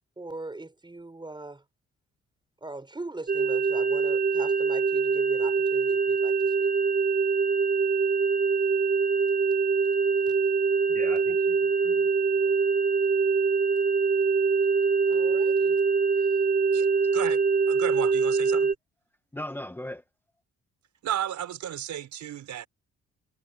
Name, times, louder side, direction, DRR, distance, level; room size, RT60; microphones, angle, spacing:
voice 1, 0.2-1.6 2.6-6.7 15.1-15.8, right 2 dB, 15° right, 5.6 m, -40 dB
sound 1, 3.3-18.7, right 5 dB, 30° right, 2.3 m, -24 dB
voice 2, 10.9-12.1 12.4-12.5 16.2-16.3 19.3-20.0, left 1 dB, 5° left, 1.5 m, -39 dB
voice 3, 16.7-17.4 17.7-18.7 21.0-22.7, right 10 dB, 70° right, 5.0 m, -33 dB
cardioid pair, 90°, 30 cm